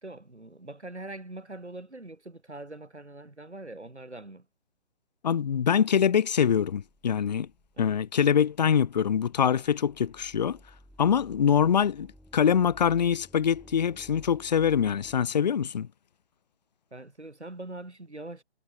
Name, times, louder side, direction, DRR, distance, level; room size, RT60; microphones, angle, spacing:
voice 1, 0.0-4.4 7.8-7.9 16.9-18.4, right 2 dB, 90° right, 5.1 m, -43 dB
voice 2, 5.2-7.5 7.8-10.6 11.0-12.1 12.3-15.9, left 8 dB, 40° left, 0.4 m, -24 dB
sound 1, 6.7-15.2, equal, ahead, 5.2 m, -55 dB
figure-of-eight pair, 140°, 33 cm